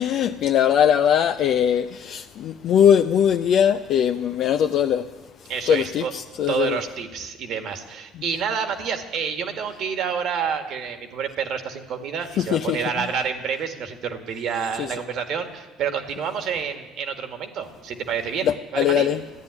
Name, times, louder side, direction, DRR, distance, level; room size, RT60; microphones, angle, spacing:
voice 1, 0.0-5.1 5.7-6.8 12.4-13.0 14.8-14.9 18.4-19.2, left 9 dB, 60° left, 0.5 m, -21 dB
voice 2, 5.5-6.1 6.5-19.1, right 7 dB, 60° right, 1.9 m, -28 dB
14.5 x 10.5 x 9.7 m
hypercardioid pair, 65°, 0 cm